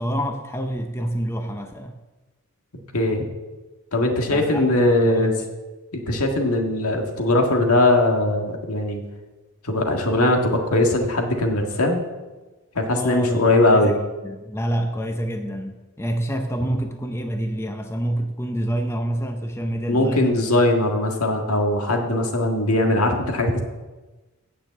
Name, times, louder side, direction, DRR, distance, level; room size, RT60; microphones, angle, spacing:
voice 1, 0.0-2.0 4.3-4.7 5.1-5.3 12.9-13.9 14.2-20.4, right 1 dB, 10° left, 4 dB, 0.7 m, -27 dB
voice 2, 2.9-3.2 3.9-5.4 5.9-9.0 9.6-12.0 12.8-13.9 19.9-23.6, left 1 dB, 80° left, 2 dB, 1.8 m, -20 dB
9.2 x 6.7 x 8.1 m, 1.2 s
head